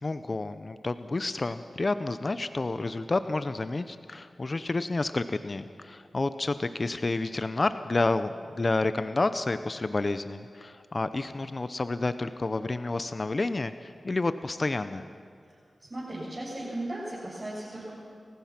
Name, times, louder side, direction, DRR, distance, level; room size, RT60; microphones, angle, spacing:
voice 1, 0.0-15.0, left 2 dB, 45° left, 11 dB, 0.7 m, -30 dB
voice 2, 15.8-17.9, right 1 dB, 30° right, -8 dB, 7.4 m, -36 dB
29.0 x 15.5 x 6.0 m, 2.2 s
cardioid pair, 55°, 0 cm